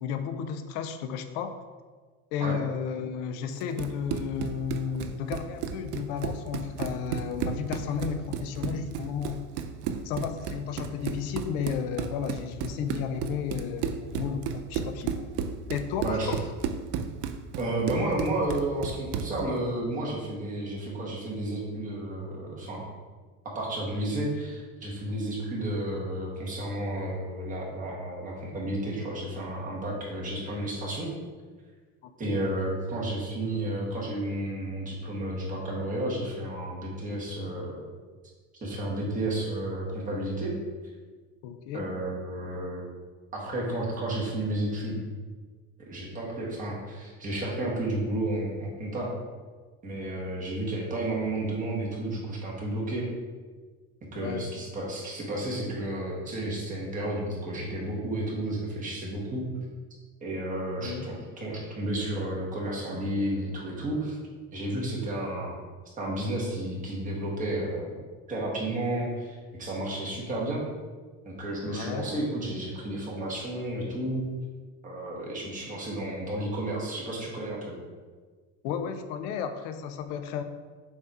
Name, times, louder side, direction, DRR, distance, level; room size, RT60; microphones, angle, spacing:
voice 1, 0.0-1.6 2.3-9.4 10.0-15.1 15.7-16.4 32.0-32.4 41.4-41.9 54.1-54.5 60.8-61.1 71.6-72.1 78.6-80.4, left 7 dB, 85° left, 8 dB, 0.6 m, -33 dB
Run, 3.6-19.4, right 7 dB, 50° right, 0.4 m, -34 dB
voice 2, 17.5-22.8 23.5-31.1 32.2-37.8 38.6-40.5 41.7-42.8 43.3-45.0 45.8-49.1 49.8-53.1 54.1-59.5 60.2-64.2 64.5-65.5 66.0-67.9 68.3-70.6 71.2-74.2 74.8-77.8, right 1 dB, 25° right, -3 dB, 1.4 m, -32 dB
7.2 x 2.8 x 4.7 m, 1.5 s
cardioid pair, 160°, 31 cm